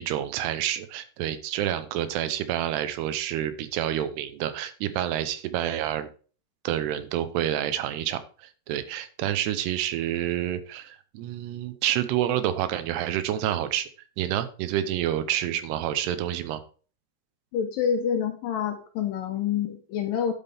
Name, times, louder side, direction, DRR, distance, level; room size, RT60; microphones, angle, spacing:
voice 1, 0.0-6.1 6.6-8.2 8.7-13.9 14.2-16.6, right 11 dB, 80° right, 11 dB, 2.9 m, -28 dB
voice 2, 17.5-20.3, left 8 dB, 70° left, 6 dB, 2.3 m, -27 dB
9.6 x 8.1 x 3.5 m, 0.38 s
omnidirectional pair, 4.8 m